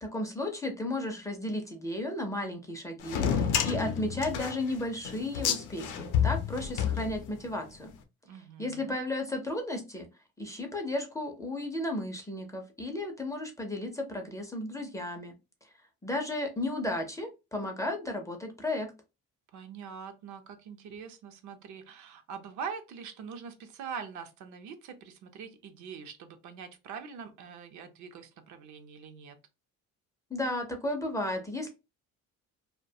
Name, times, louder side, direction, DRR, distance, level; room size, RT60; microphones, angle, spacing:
voice 1, 0.0-7.9 8.6-10.1 10.4-15.3 16.0-18.9 30.3-31.7, left 1 dB, 10° left, 0.4 m, -34 dB
sound 1, 3.0-7.6, left 8 dB, 90° left, 0.5 m, -30 dB
voice 2, 8.2-9.0 19.5-29.4, right 6 dB, 70° right, 0.6 m, -43 dB
2.3 x 2.1 x 2.6 m
cardioid pair, 125°, 30 cm